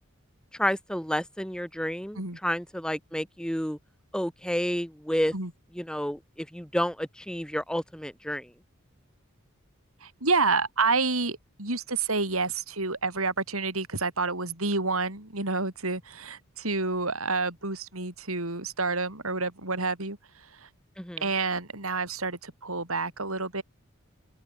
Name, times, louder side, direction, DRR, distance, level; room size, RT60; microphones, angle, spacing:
voice 1, 0.6-3.8 4.1-5.3 5.7-8.5 21.0-21.2, equal, 5° left, 6.6 m, -30 dB
voice 2, 10.0-20.7 21.2-23.6, right 3 dB, 80° right, 6.3 m, -29 dB
head